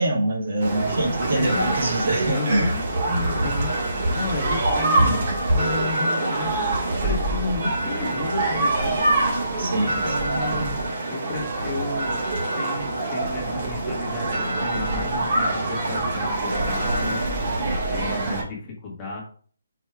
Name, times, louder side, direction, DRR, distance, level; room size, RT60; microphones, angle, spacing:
voice 1, 0.0-2.7 9.6-10.0, right 1 dB, 55° right, 1 dB, 1.8 m, -24 dB
sound 1, 0.6-18.4, right 2 dB, 40° right, 2.0 m, -24 dB
voice 2, 1.3-1.9 2.3-3.7 4.1-6.7 7.0-9.1 9.8-12.2 12.5-17.3 17.9-19.2, left 3 dB, 15° left, -4 dB, 1.6 m, -33 dB
4.7 x 4.3 x 4.7 m, 0.44 s
hypercardioid pair, 170°, 0 cm